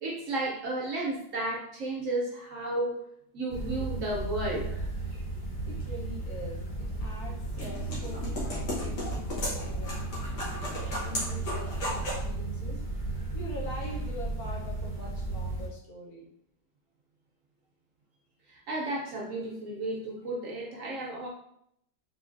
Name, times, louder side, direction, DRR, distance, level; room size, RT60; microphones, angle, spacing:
voice 1, 0.0-3.0 3.3-4.8 18.5-21.3, right 2 dB, 60° right, -2 dB, 0.9 m, -33 dB
sound 1, 3.5-15.7, right 2 dB, 20° left, 0.6 m, -35 dB
voice 2, 5.6-12.8 13.3-16.3, left 1 dB, 65° left, -3 dB, 1.3 m, -44 dB
sound 2, 7.0-12.3, left 1 dB, 80° left, 1.7 m, -36 dB
3.9 x 3.2 x 2.5 m, 0.72 s
omnidirectional pair, 1.8 m